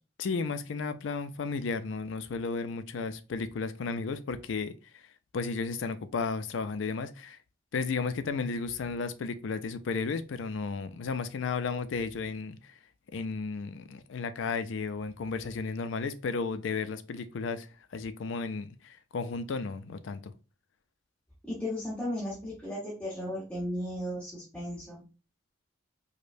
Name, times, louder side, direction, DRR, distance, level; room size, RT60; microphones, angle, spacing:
voice 1, 0.2-5.0 5.3-7.4 7.7-12.7 13.1-20.3, left 4 dB, 70° left, 0.4 m, -34 dB
voice 2, 21.4-25.0, left 1 dB, 10° left, 1.2 m, -35 dB
4.9 x 2.1 x 2.6 m
head